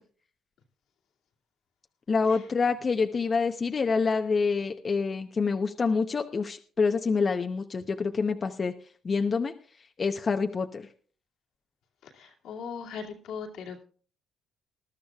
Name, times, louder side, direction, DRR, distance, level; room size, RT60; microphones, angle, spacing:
voice 1, 2.1-8.7 9.0-9.5 10.0-10.9, left 4 dB, 40° left, 5 dB, 0.8 m, -27 dB
voice 2, 12.0-13.8, left 6 dB, 85° left, 0 dB, 2.4 m, -39 dB
20.5 x 12.0 x 2.4 m, 0.42 s
cardioid pair, 90°, 0 cm